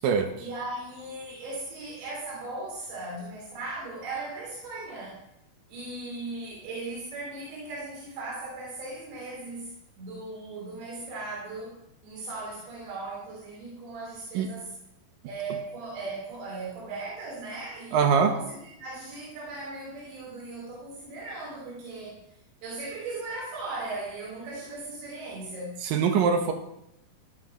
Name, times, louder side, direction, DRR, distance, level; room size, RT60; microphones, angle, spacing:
voice 1, 0.4-5.2 5.7-11.7 12.0-14.7 15.3-22.2 22.6-25.8, right 2 dB, 85° right, -4 dB, 5.5 m, -38 dB
voice 2, 17.9-18.3 25.8-26.5, right 6 dB, 70° right, 6 dB, 2.3 m, -22 dB
13.0 x 12.5 x 5.2 m, 0.81 s
omnidirectional pair, 4.9 m